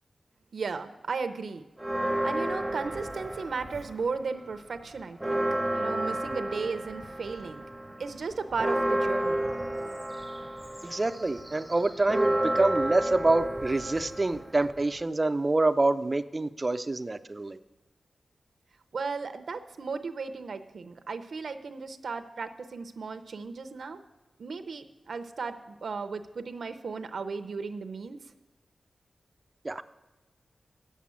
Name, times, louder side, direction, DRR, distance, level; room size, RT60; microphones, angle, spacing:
voice 1, 0.5-1.6 2.2-5.4 5.7-7.6 8.0-9.5 18.9-24.0 24.4-28.2, right 4 dB, 75° right, 8 dB, 0.6 m, -35 dB
Church bell, 1.8-4.2 4.5-4.6 5.0-15.0, right 1 dB, 5° right, 0.8 m, -31 dB
voice 2, 10.8-17.6 29.6-29.8, right 2 dB, 25° right, 10 dB, 0.4 m, -26 dB
8.2 x 7.4 x 8.5 m, 1.2 s
wide cardioid pair, 135°, 0 cm